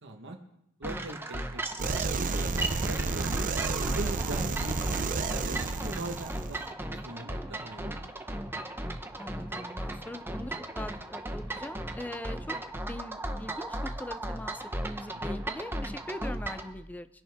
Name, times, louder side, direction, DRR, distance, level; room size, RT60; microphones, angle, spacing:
voice 1, 0.0-0.4 0.8-3.3 3.9-6.6 6.9-8.1 15.1-15.3, right 2 dB, 60° right, 4 dB, 1.4 m, -41 dB
sound 1, 0.8-16.7, right 1 dB, 10° right, 0.9 m, -36 dB
sound 2, 1.8-6.7, right 4 dB, 40° right, 0.6 m, -31 dB
voice 2, 9.2-12.6 12.9-17.1, left 1 dB, 10° left, 11 dB, 0.5 m, -41 dB
23.0 x 11.0 x 3.6 m, 0.81 s
head